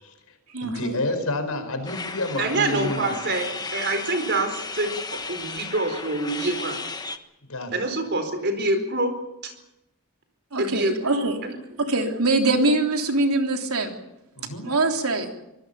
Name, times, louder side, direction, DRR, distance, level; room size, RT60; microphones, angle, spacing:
voice 1, 0.0-3.1 7.4-7.7 14.3-14.7, left 2 dB, 80° left, 7 dB, 5.1 m, -30 dB
voice 2, 0.5-0.9 10.5-11.4 11.8-13.9 14.6-15.3, right 2 dB, 80° right, 4 dB, 3.5 m, -23 dB
sound 1, 1.8-7.2, left 4 dB, 20° left, 1.3 m, -34 dB
voice 3, 2.4-6.8 7.7-9.1 9.4-9.5 10.6-11.6, right 2 dB, 50° right, 7 dB, 4.5 m, -26 dB
25.0 x 20.0 x 7.0 m, 0.88 s
head